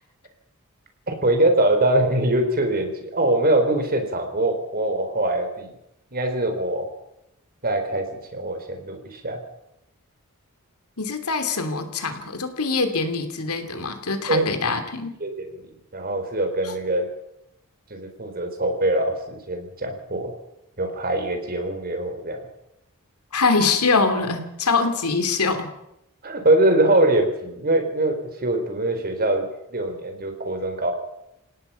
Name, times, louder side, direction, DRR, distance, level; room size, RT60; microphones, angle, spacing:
voice 1, 1.1-5.7 6.1-6.9 7.6-8.1 8.3-9.4 14.3-14.5 15.2-15.5 15.9-17.1 17.9-20.3 20.8-22.4 26.2-30.9, right 1 dB, 45° right, 5 dB, 4.0 m, -23 dB
voice 2, 11.0-15.1 16.6-16.7 23.3-25.7, left 4 dB, 90° left, 7 dB, 3.0 m, -23 dB
29.0 x 17.5 x 5.7 m, 0.84 s
head